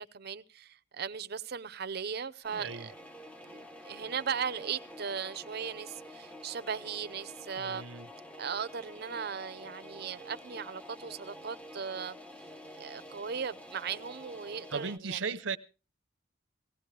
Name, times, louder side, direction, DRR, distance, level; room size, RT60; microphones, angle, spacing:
voice 1, 0.0-2.9 3.4-7.8 8.4-12.2 12.8-15.3, right 6 dB, 55° right, 0.7 m, -38 dB
sound 1, 2.4-15.0, equal, 5° left, 1.1 m, -49 dB
voice 2, 2.5-2.9 7.6-8.1 14.7-15.6, right 5 dB, 90° right, 0.8 m, -36 dB
18.5 x 16.0 x 3.3 m
head